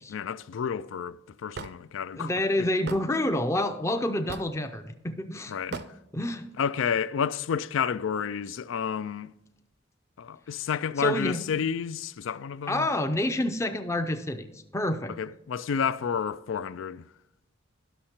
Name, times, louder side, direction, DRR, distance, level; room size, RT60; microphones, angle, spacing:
voice 1, 0.1-2.3 2.6-2.7 5.5-5.8 6.6-9.3 10.2-12.9 15.2-17.0, left 7 dB, 85° left, 0.4 m, -30 dB
Hammer / Wood, 1.5-1.7 2.9-3.0 4.3-4.6 5.7-5.9, right 4 dB, 55° right, 0.5 m, -36 dB
voice 2, 2.1-5.8 6.1-6.5 11.0-11.4 12.7-15.1, left 1 dB, 15° left, 0.5 m, -28 dB
11.5 x 6.5 x 4.3 m
head